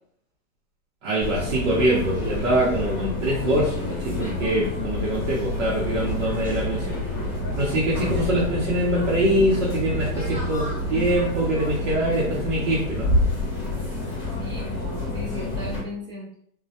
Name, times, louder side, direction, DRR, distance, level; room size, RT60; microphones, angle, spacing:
voice 1, 1.0-7.0 7.5-13.1, right 1 dB, 55° right, -6 dB, 0.7 m, -24 dB
sound 1, 1.2-15.8, left 1 dB, 10° left, 0.8 m, -28 dB
voice 2, 14.0-16.3, left 1 dB, 10° right, -8 dB, 0.5 m, -37 dB
2.2 x 2.0 x 2.7 m, 0.65 s
hypercardioid pair, 155°, 44 cm